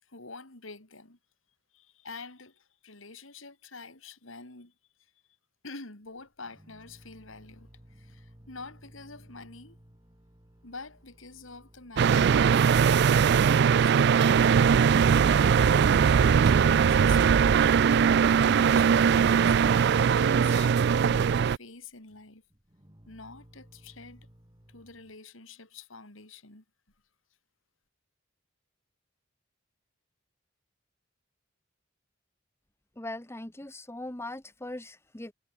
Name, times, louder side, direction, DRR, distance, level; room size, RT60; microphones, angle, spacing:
voice 1, 0.0-1.2 1.7-4.7 5.0-5.1 5.6-9.8 10.6-12.5 12.9-14.1 14.8-17.6 18.4-20.7 21.0-22.4 23.1-24.3 24.7-26.6, left 4 dB, 80° left, 3.8 m, -47 dB
sound 1, 6.1-13.5 13.8-13.9 14.3-16.2 16.6-25.2, equal, 20° right, 2.2 m, -57 dB
sound 2, 12.0-21.6, right 7 dB, 55° right, 0.3 m, -21 dB
voice 2, 33.0-35.3, left 1 dB, 15° left, 1.1 m, -40 dB
head